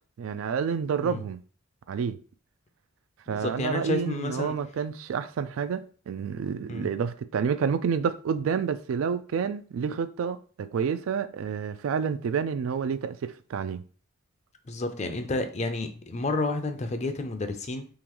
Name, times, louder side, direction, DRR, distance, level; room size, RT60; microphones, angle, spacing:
voice 1, 0.2-1.4 1.9-2.2 3.3-13.8, right 6 dB, 80° right, 0.3 m, -29 dB
voice 2, 3.3-4.6 6.7-6.9 14.7-17.9, left 2 dB, 35° left, 0.5 m, -30 dB
3.8 x 2.9 x 2.9 m
head